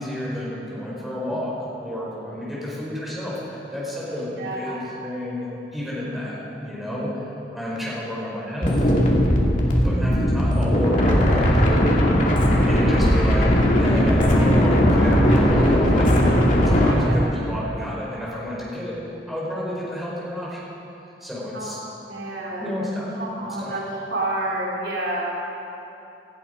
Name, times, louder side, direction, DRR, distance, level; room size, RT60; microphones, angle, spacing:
voice 1, 0.0-1.5 1.8-8.8 9.8-11.7 12.7-13.5 13.8-16.2 16.5-19.0 19.3-20.7 21.2-21.8 22.6-23.1 23.6-23.8, left 1 dB, ahead, -7 dB, 4.6 m, -30 dB
voice 2, 4.3-4.8 16.8-17.2 21.5-21.7 22.1-22.7 23.2-23.8 24.1-25.3, right 2 dB, 75° right, -5 dB, 3.6 m, -29 dB
sound 1, 8.6-16.9, equal, 45° left, 2.5 m, -18 dB
18.0 x 14.5 x 5.1 m, 2.9 s
head